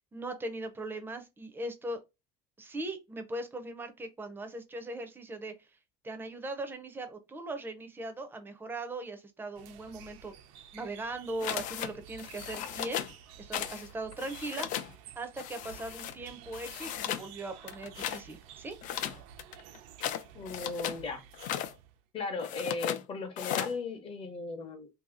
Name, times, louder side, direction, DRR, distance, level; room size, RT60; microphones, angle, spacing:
voice 1, 0.1-2.0 2.6-5.5 6.0-10.3 10.7-13.0 13.4-14.7 15.2-18.7, right 2 dB, 10° right, 0.6 m, -39 dB
sound 1, 9.6-22.0, right 9 dB, 90° right, 0.7 m, -52 dB
sound 2, 11.4-11.9 12.2-13.1 13.5-13.9 14.1-14.9 15.4-16.1 16.5-17.3 17.6-18.2 18.8-21.0 21.3-21.7 22.4-23.0 23.4-23.7, left 11 dB, 50° left, 0.4 m, -36 dB
voice 2, 20.3-21.2 22.1-24.9, left 3 dB, 35° left, 0.8 m, -37 dB
2.8 x 2.8 x 3.6 m
cardioid pair, 150°, 17 cm